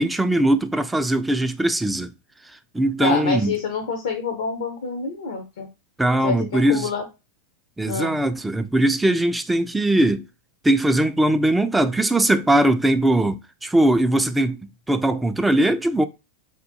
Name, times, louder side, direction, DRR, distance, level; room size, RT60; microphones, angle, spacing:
voice 1, 0.0-2.1 2.7-3.6 6.0-6.9 7.8-10.2 10.6-14.6 14.9-16.1, right 1 dB, 5° right, 0.3 m, -20 dB
voice 2, 3.0-5.7 6.2-7.0 7.9-8.1, left 5 dB, 60° left, 0.6 m, -27 dB
3.4 x 2.1 x 2.7 m
figure-of-eight pair, 90°, 0 cm